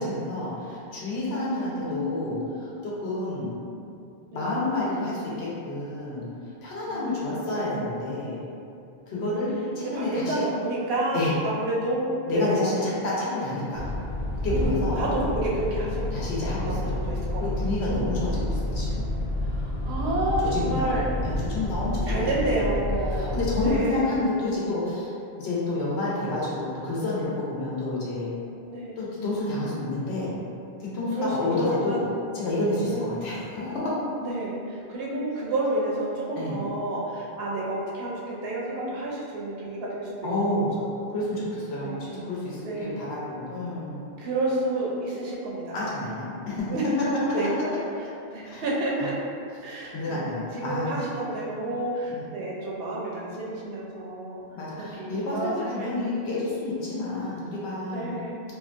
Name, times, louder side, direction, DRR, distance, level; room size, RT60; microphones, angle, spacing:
voice 1, 0.0-3.5 4.3-6.3 6.6-8.4 9.1-10.3 11.1-11.3 12.3-13.9 14.4-15.0 16.1-17.0 17.4-19.1 20.4-22.3 22.6-22.7 23.1-28.3 29.0-30.3 30.8-32.1 32.3-34.0 36.3-36.6 40.2-40.8 41.1-44.0 45.7-46.7 47.0-47.1 48.4-48.6 49.0-49.1 49.6-51.0 52.1-52.3 54.6-58.2, left 2 dB, 80° left, -7 dB, 0.9 m, -29 dB
voice 2, 1.3-2.6 4.3-4.5 6.8-7.5 9.1-9.4 9.8-12.6 14.5-16.1 16.7-18.5 19.4-21.1 22.1-24.3 28.7-29.0 31.2-32.0 32.8-33.1 34.2-40.3 40.5-41.1 41.8-42.2 42.6-43.0 44.2-45.8 46.7-46.8 47.3-47.5 48.3-49.2 49.6-54.4 54.8-56.5 56.9-57.3 57.9-58.4, right 1 dB, 70° right, -4 dB, 0.8 m, -30 dB
sound 1, 13.7-23.8, left 1 dB, 55° left, 0.5 m, -29 dB
2.8 x 2.1 x 2.5 m, 2.5 s
omnidirectional pair, 1.1 m